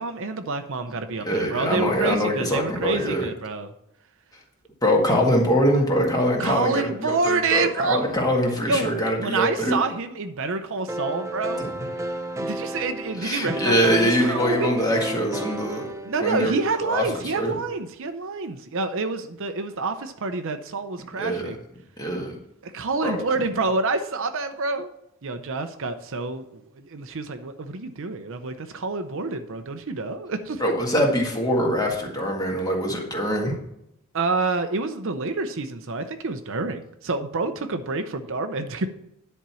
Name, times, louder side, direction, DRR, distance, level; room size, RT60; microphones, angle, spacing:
voice 1, 0.0-3.7 6.4-8.0 8.7-8.9 9.2-11.7 12.3-14.7 16.0-21.6 22.6-24.9 25.2-30.6 34.1-38.9, right 3 dB, 60° right, 8 dB, 0.7 m, -27 dB
voice 2, 1.2-3.3 4.8-9.7 13.2-15.8 16.2-17.6 21.2-21.5 22.0-22.3 23.0-23.2 30.6-33.6, equal, 15° left, 0 dB, 1.8 m, -23 dB
sound 1, 10.9-16.8, right 1 dB, 15° right, 0.6 m, -32 dB
10.5 x 4.5 x 6.9 m, 0.79 s
head